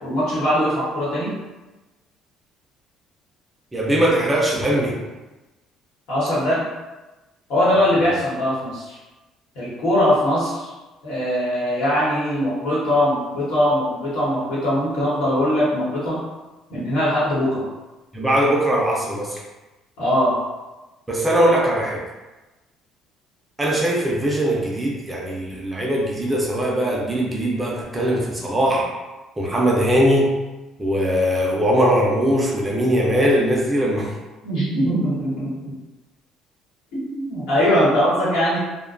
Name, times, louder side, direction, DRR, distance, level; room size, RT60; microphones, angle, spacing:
voice 1, 0.0-1.4 6.1-6.6 7.5-9.0 9.5-10.7 11.0-16.2 16.7-17.7 20.0-20.4 34.4-35.7 36.9-38.6, equal, 80° left, -8 dB, 1.2 m, -21 dB
voice 2, 3.7-5.0 18.1-19.4 21.1-22.0 23.6-28.9 29.4-30.3 30.8-34.2, equal, 10° right, -3 dB, 0.3 m, -20 dB
2.5 x 2.2 x 2.4 m, 1.1 s
cardioid pair, 170°, 0 cm